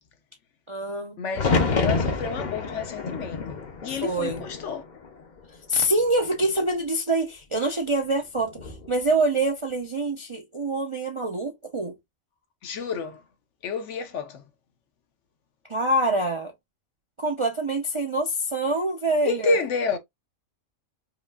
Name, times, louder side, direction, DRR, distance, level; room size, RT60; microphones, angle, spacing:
voice 1, 0.7-1.2 4.0-4.4 5.7-12.0 15.7-16.5 17.2-19.6, right 2 dB, 40° right, 0.4 m, -25 dB
voice 2, 1.2-4.8 12.6-13.2 13.6-14.4 19.2-20.0, left 4 dB, 65° left, 0.9 m, -29 dB
sound 1, 1.3-5.4 5.7-6.5 8.4-8.9, left 4 dB, 45° left, 0.7 m, -28 dB
4.9 x 2.4 x 2.3 m
omnidirectional pair, 1.4 m